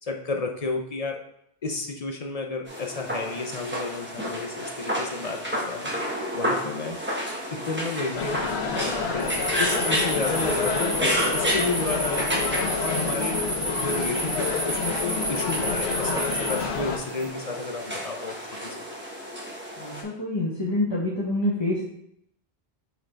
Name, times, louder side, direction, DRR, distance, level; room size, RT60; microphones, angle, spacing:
voice 1, 0.0-1.2 1.6-5.9 6.3-7.0 7.5-9.3 9.6-12.4 12.8-18.3 18.6-18.8, left 3 dB, 45° left, 3 dB, 0.6 m, -32 dB
sound 1, 2.7-20.0, equal, 10° right, 1.3 m, -31 dB
sound 2, 8.1-17.0, left 4 dB, 80° left, 1.0 m, -29 dB
sound 3, 9.2-17.3, right 1 dB, 35° right, 1.7 m, -31 dB
voice 2, 19.8-21.9, left 1 dB, 25° left, -7 dB, 1.2 m, -27 dB
7.9 x 3.8 x 3.3 m, 0.73 s
omnidirectional pair, 1.1 m